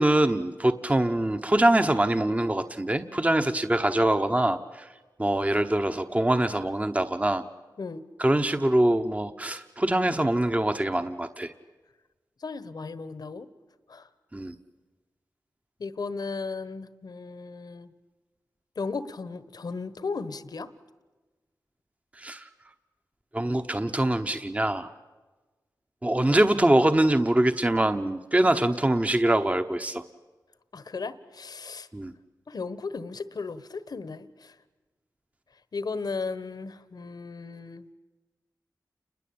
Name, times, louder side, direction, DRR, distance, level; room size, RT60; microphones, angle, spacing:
voice 1, 0.0-4.9 5.2-7.4 8.2-11.5 14.3-14.5 22.2-22.4 23.3-24.9 26.0-30.0 31.9-32.1, right 1 dB, 20° right, 8 dB, 1.0 m, -24 dB
voice 2, 12.4-13.5 13.9-14.1 15.8-17.9 18.8-20.7 30.7-31.9 32.5-34.5 35.7-37.8, left 4 dB, 70° left, 14 dB, 1.2 m, -35 dB
29.5 x 21.5 x 8.7 m, 1.2 s
wide cardioid pair, 65°, 7 cm